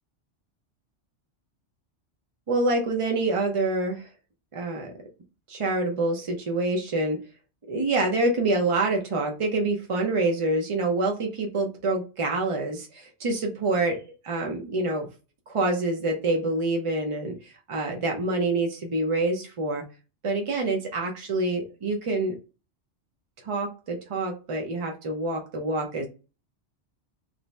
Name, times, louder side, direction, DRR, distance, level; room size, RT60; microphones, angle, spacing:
voice 1, 2.5-4.1 4.5-4.9 5.5-7.2 7.7-15.1 15.5-19.8 20.2-22.4 23.4-26.1, right 2 dB, 55° right, 2 dB, 0.3 m, -26 dB
2.5 x 2.1 x 3.1 m, 0.30 s
omnidirectional pair, 1.2 m